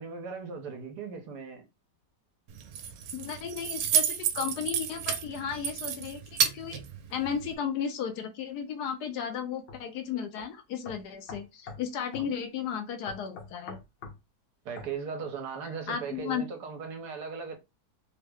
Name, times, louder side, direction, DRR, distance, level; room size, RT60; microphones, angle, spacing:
voice 1, 0.0-1.6 12.2-12.3 14.6-17.6, right 5 dB, 70° right, 1.3 m, -38 dB
Keys jangling, 2.5-7.5, right 8 dB, 85° right, 1.3 m, -31 dB
voice 2, 3.1-6.8 7.1-13.8 15.9-16.4, left 7 dB, 70° left, 1.1 m, -34 dB
sound 1, 9.7-9.8 10.4-10.5 10.8-11.9 12.1-12.3 13.1-14.2 14.8-14.9, left 4 dB, 85° left, 1.5 m, -43 dB
3.6 x 2.1 x 3.4 m
omnidirectional pair, 1.9 m